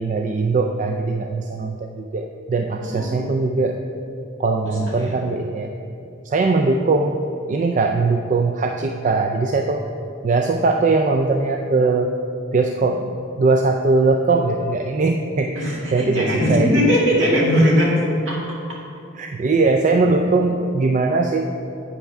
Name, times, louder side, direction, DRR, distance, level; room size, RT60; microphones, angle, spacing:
voice 1, 0.0-3.8 4.4-5.7 6.3-7.2 7.5-9.9 10.2-12.1 12.5-13.1 13.4-16.8 19.2-21.5, right 3 dB, 35° right, 4 dB, 0.4 m, -20 dB
voice 2, 2.8-3.5 4.6-5.2 15.5-17.9 18.3-18.4, equal, 65° right, -4 dB, 2.2 m, -20 dB
8.5 x 5.5 x 5.9 m, 2.7 s
head